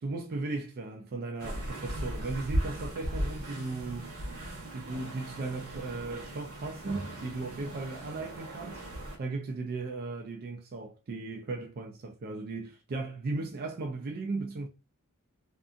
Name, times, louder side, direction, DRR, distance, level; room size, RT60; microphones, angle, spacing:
voice 1, 0.0-4.1 4.7-8.8 9.2-14.7, right 3 dB, 45° right, 0.4 m, -36 dB
sound 1, 1.4-9.2, right 1 dB, 75° right, 1.0 m, -37 dB
2.7 x 2.4 x 2.4 m
head